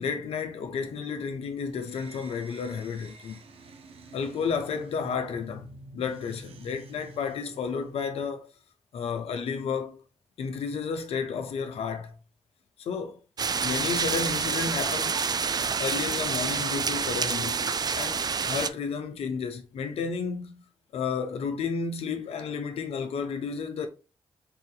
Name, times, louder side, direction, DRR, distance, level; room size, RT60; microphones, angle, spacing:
voice 1, 0.0-3.4 4.1-8.5 8.9-10.0 10.4-12.1 12.8-13.2 13.6-15.2 15.8-20.6 20.9-23.9, left 6 dB, 75° left, 0.7 m, -32 dB
sound 1, 1.7-8.4, right 2 dB, 70° right, 0.7 m, -48 dB
sound 2, 13.4-18.7, right 5 dB, 40° right, 0.4 m, -28 dB
4.2 x 2.7 x 3.8 m
supercardioid pair, 45°, 10 cm